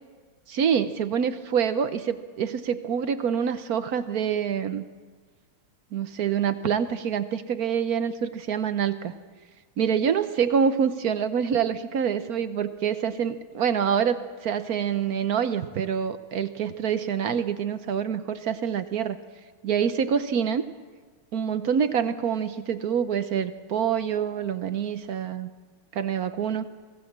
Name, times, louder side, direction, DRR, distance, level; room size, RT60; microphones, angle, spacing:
voice 1, 0.5-4.8 5.9-9.1 9.8-19.2 19.6-20.6 21.3-25.5 25.9-26.6, right 7 dB, 60° right, 11 dB, 1.1 m, -26 dB
25.5 x 17.5 x 7.4 m, 1.5 s
omnidirectional pair, 2.3 m